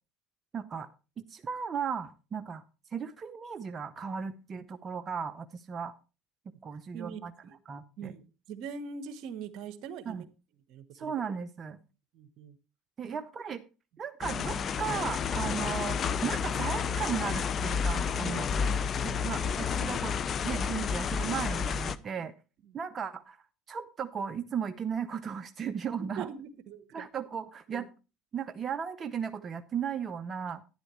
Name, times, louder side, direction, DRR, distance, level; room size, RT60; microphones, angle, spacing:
voice 1, 0.5-2.6 2.9-5.9 6.6-7.3 7.7-8.1 10.1-10.3 10.9-11.8 13.0-13.6 14.0-18.5 19.0-20.1 20.4-22.3 22.7-23.4 23.7-26.3 26.9-27.9 28.3-30.6, right 7 dB, 35° right, 8 dB, 0.7 m, -36 dB
voice 2, 6.9-7.6 8.0-10.3 10.7-11.1 12.1-12.5 13.0-13.2 18.2-18.4 22.7-22.8 26.2-27.1 27.7-27.9, right 6 dB, 65° right, 13 dB, 1.1 m, -42 dB
sound 1, 14.2-22.0, left 6 dB, 40° left, 0.6 m, -30 dB
11.0 x 10.0 x 3.1 m, 0.32 s
supercardioid pair, 95°, 0 cm